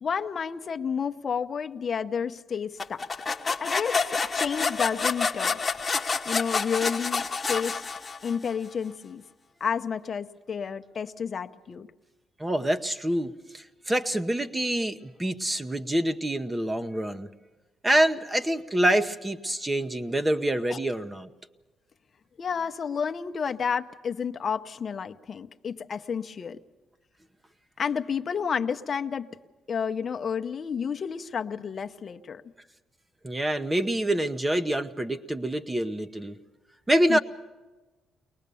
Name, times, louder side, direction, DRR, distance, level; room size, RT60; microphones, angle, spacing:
voice 1, 0.0-3.0 3.6-5.6 6.3-7.8 8.2-9.2 9.6-11.9 20.7-20.8 22.4-26.6 27.8-29.3 29.7-32.4 37.1-37.2, left 6 dB, 45° left, 7 dB, 0.8 m, -30 dB
sound 1, 2.8-8.5, left 4 dB, 30° left, 1.1 m, -28 dB
voice 2, 12.4-17.3 17.8-21.3 33.2-36.4 36.9-37.2, right 1 dB, 15° right, 9 dB, 0.9 m, -26 dB
23.0 x 19.5 x 6.9 m, 1.2 s
cardioid pair, 90°, 0 cm